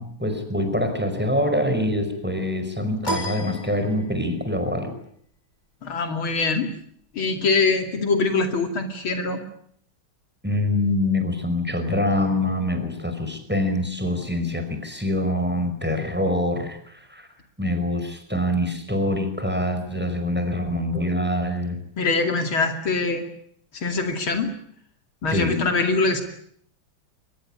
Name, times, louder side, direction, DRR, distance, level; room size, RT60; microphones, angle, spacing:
voice 1, 0.0-4.9 10.4-17.3 17.6-21.8 25.3-25.6, left 1 dB, 5° right, 7 dB, 5.0 m, -25 dB
sound 1, 3.0-4.4, right 1 dB, 20° left, 3.4 m, -32 dB
voice 2, 5.8-6.7 7.1-9.4 22.0-23.3 23.7-24.5 25.2-26.2, left 3 dB, 70° left, 6 dB, 3.4 m, -23 dB
23.5 x 20.5 x 10.0 m, 0.68 s
omnidirectional pair, 2.3 m